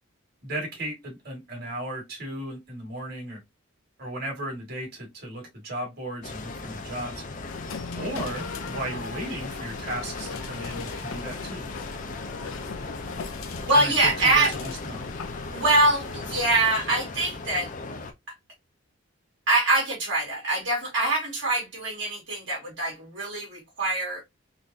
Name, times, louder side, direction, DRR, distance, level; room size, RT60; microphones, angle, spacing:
voice 1, 0.4-3.4 4.0-7.2 7.9-11.7 13.7-15.1, right 1 dB, 45° right, 1.9 m, -35 dB
sound 1, 6.2-18.1, left 3 dB, 40° left, 0.5 m, -38 dB
sound 2, 7.5-16.5, left 4 dB, 80° left, 0.6 m, -39 dB
voice 2, 13.7-14.5 15.5-17.7 19.5-24.2, right 2 dB, 60° right, 1.8 m, -24 dB
3.8 x 3.1 x 2.7 m
head